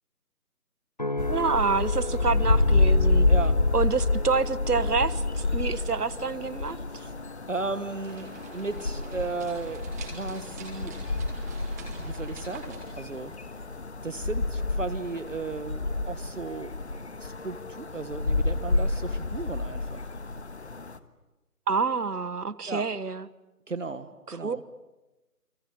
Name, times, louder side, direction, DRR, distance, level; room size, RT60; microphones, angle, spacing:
sound 1, 1.0-15.5 16.0-16.4, left 2 dB, 30° left, 0.9 m, -41 dB
sound 2, 1.2-21.0, left 3 dB, 45° left, 1.6 m, -28 dB
voice 1, 1.3-3.3 3.7-7.1 21.7-23.3 24.3-24.6, right 5 dB, 75° right, 17 dB, 1.4 m, -28 dB
voice 2, 3.3-3.6 6.9-7.1 7.5-10.9 12.0-13.3 14.0-16.7 17.2-20.1 22.7-22.9 23.7-24.6, right 3 dB, 55° right, 11 dB, 1.6 m, -35 dB
sound 3, 7.6-13.8, right 2 dB, 10° right, 2.6 m, -46 dB
29.5 x 22.5 x 8.5 m, 1.1 s
figure-of-eight pair, 165°, 46 cm